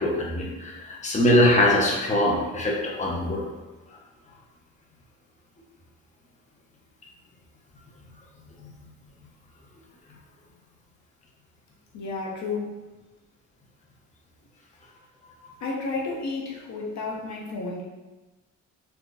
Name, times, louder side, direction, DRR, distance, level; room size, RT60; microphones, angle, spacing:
voice 1, 0.0-3.4 8.6-8.7, left 1 dB, 25° left, -2 dB, 0.9 m, -22 dB
voice 2, 11.9-12.9 15.6-17.8, left 3 dB, 65° left, -2 dB, 1.0 m, -32 dB
3.5 x 3.0 x 4.0 m, 1.2 s
cardioid pair, 90°, 30 cm